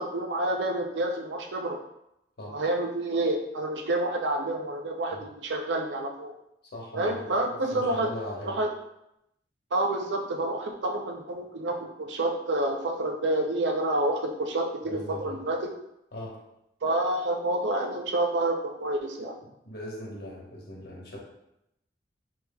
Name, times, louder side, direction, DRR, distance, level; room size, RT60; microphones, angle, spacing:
voice 1, 0.0-1.8 2.5-6.3 6.9-8.1 8.4-8.7 9.7-15.7 16.8-19.4, right 1 dB, 70° right, 3 dB, 0.5 m, -28 dB
voice 2, 6.7-7.3 7.7-8.6 14.9-15.3 16.1-16.4 19.6-21.2, left 1 dB, 60° left, -3 dB, 1.1 m, -39 dB
5.1 x 3.0 x 2.2 m, 0.83 s
head